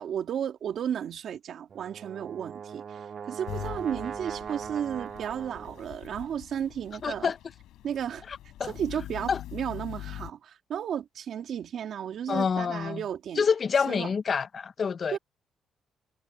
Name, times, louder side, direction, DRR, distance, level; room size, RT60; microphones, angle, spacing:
voice 1, 0.0-7.3 7.8-8.2 8.6-13.4 13.9-14.1 15.1-15.2, right 9 dB, 65° right, 2.9 m, -33 dB
Brass instrument, 1.7-6.0, right 7 dB, 50° right, 0.5 m, -40 dB
sound 1, 3.5-10.3, left 13 dB, 90° left, 5.0 m, -43 dB
voice 2, 7.0-7.4 8.6-8.7 9.3-9.4 12.3-13.0 13.4-15.2, left 6 dB, 45° left, 0.9 m, -27 dB
cardioid pair, 95°, 0 cm